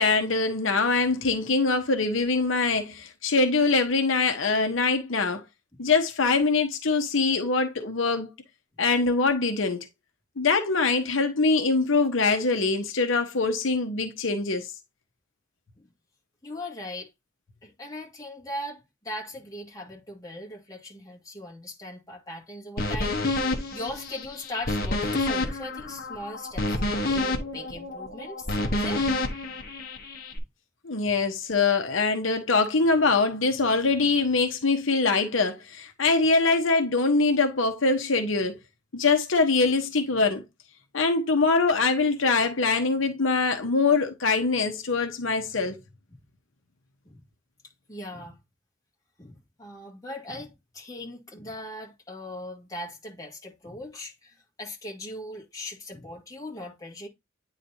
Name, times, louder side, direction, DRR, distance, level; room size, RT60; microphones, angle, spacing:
voice 1, 0.0-5.4 5.8-8.3 8.8-9.8 10.4-14.7 30.8-38.6 38.9-40.4 40.9-45.8, left 3 dB, 80° left, 1.0 m, -23 dB
voice 2, 16.4-17.1 17.6-23.2 23.7-29.1 29.5-29.6 30.3-30.4 47.0-47.2 47.9-48.4 49.2-57.1, left 1 dB, 20° left, 2.0 m, -39 dB
sound 1, 22.8-30.4, left 2 dB, 50° left, 1.2 m, -28 dB
9.5 x 4.0 x 2.8 m
head